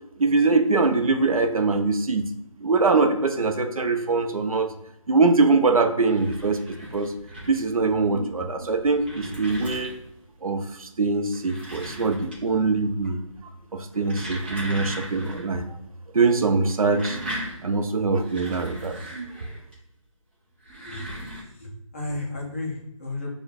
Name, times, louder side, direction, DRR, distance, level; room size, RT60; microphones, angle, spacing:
voice 1, 0.2-2.2 2.6-4.7 5.1-7.1 7.5-9.9 10.4-13.2 13.7-15.7 16.1-17.2 17.6-19.3, right 3 dB, 90° right, 7 dB, 0.6 m, -23 dB
sound 1, 5.9-7.8 8.5-10.2 11.2-12.6 12.9-13.4 13.8-15.5 15.8-15.9 16.7-19.7 20.5-21.4, right 1 dB, 20° right, 0.7 m, -38 dB
voice 2, 21.5-23.3, left 2 dB, 25° left, -3 dB, 0.6 m, -33 dB
6.3 x 2.3 x 2.4 m, 0.78 s
figure-of-eight pair, 165°, 18 cm